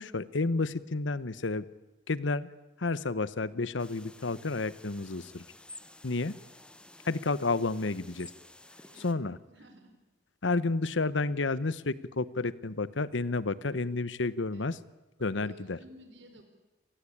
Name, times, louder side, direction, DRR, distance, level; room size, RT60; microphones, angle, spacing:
voice 1, 0.0-1.6 2.1-2.5 2.8-5.4 6.0-6.4 7.0-8.3 9.0-9.4 10.4-14.8 15.2-15.8, left 3 dB, 90° left, 17 dB, 0.9 m, -31 dB
sound 1, 3.8-9.1, left 2 dB, 5° left, 0.8 m, -52 dB
voice 2, 8.8-9.9 14.5-14.7 15.2-16.5, right 1 dB, 80° right, 7 dB, 4.9 m, -54 dB
27.0 x 18.5 x 8.7 m, 1.1 s
head